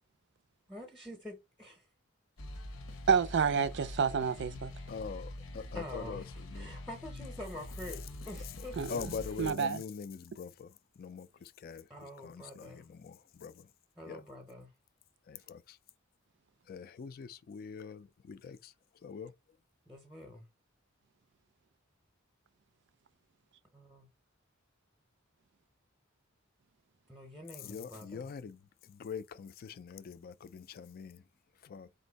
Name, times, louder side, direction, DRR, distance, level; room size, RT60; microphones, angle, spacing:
voice 1, 0.7-1.9 5.7-8.9 11.9-12.9 14.0-14.7 19.9-20.4 23.7-24.1 27.1-28.3, left 1 dB, ahead, 0.7 m, -47 dB
sound 1, 2.4-9.5, left 1 dB, 85° left, 0.8 m, -45 dB
voice 2, 3.1-4.7 8.8-9.1 9.4-9.8, right 6 dB, 55° right, 0.4 m, -29 dB
voice 3, 4.9-6.2 6.5-6.7 8.9-10.7 11.0-11.8 12.2-13.5 14.1-14.2 15.3-15.6 16.7-18.7 19.0-19.3 27.6-28.6 28.9-31.2 31.6-31.9, left 6 dB, 45° left, 0.3 m, -43 dB
4.3 x 2.6 x 3.9 m
head